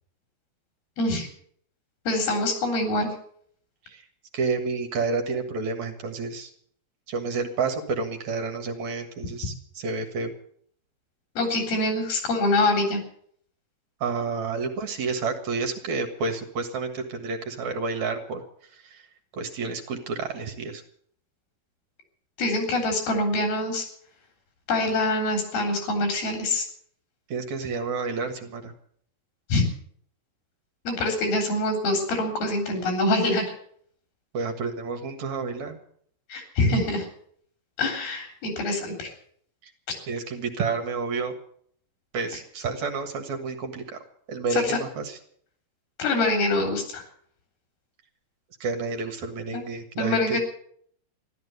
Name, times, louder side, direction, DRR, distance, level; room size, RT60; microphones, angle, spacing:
voice 1, 1.0-1.3 2.1-3.1 11.4-13.0 22.4-23.8 24.7-26.7 29.5-29.6 30.9-33.4 36.3-37.1 37.8-39.1 44.5-44.8 46.0-47.0 49.5-49.6 50.0-50.4, left 2 dB, 85° left, 3 dB, 5.6 m, -25 dB
voice 2, 4.3-6.5 7.1-10.3 14.0-18.4 18.7-19.0 19.3-20.8 27.3-28.7 34.3-35.8 40.1-41.3 42.1-44.0 44.3-45.2 48.6-50.4, right 4 dB, 55° right, 5 dB, 2.7 m, -30 dB
14.5 x 12.0 x 8.0 m, 0.62 s
omnidirectional pair, 4.3 m